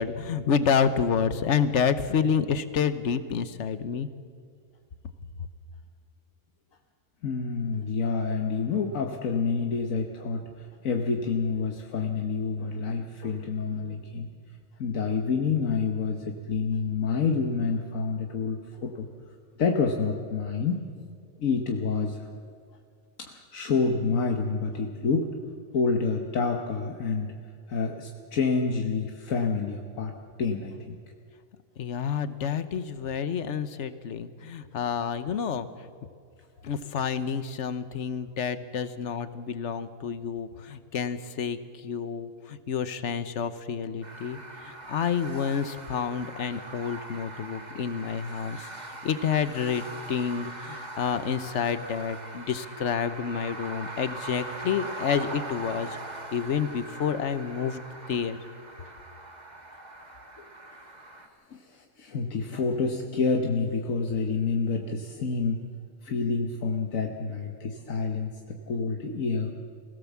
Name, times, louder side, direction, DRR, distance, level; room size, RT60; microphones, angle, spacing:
voice 1, 0.0-4.1 31.8-35.7 36.6-41.6 41.8-44.4 44.6-48.7 49.0-55.9 56.3-57.8 58.1-58.4, left 7 dB, 60° left, 12 dB, 1.2 m, -29 dB
voice 2, 7.2-14.3 14.8-19.1 19.6-20.9 21.4-22.3 23.2-25.3 25.7-27.3 27.7-30.1 30.4-31.0 60.4-60.5 61.5-65.6 66.0-69.5, left 5 dB, 80° left, 3 dB, 1.5 m, -28 dB
sound 1, 44.0-61.3, right 2 dB, 30° right, 1.8 m, -41 dB
23.0 x 17.0 x 7.3 m, 2.1 s
omnidirectional pair, 1.4 m